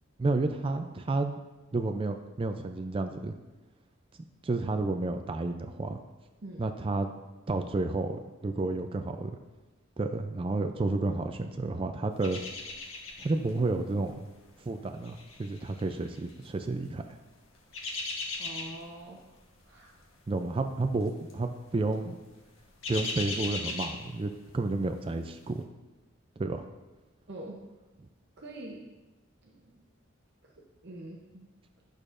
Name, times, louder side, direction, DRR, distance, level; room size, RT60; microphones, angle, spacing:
voice 1, 0.2-1.4 1.7-3.3 4.4-6.0 6.6-7.1 7.5-9.4 10.0-12.4 13.2-14.3 14.7-17.2 20.3-22.2 22.9-25.7 26.4-26.7, right 2 dB, 25° right, 7 dB, 0.3 m, -31 dB
voice 2, 6.4-6.7 18.4-19.3 19.6-19.9 27.3-27.6 28.4-29.0 29.4-29.9 30.6-31.5, right 1 dB, 55° right, -3 dB, 0.8 m, -45 dB
sound 1, 12.2-13.5 13.8-14.1 14.8-16.5 17.4-19.0 19.3-19.6 19.9-20.0 21.0-21.4 21.7-21.9 22.3-24.6 25.0-25.1, left 3 dB, 75° left, 1.2 m, -38 dB
10.5 x 6.4 x 2.5 m, 1.1 s
head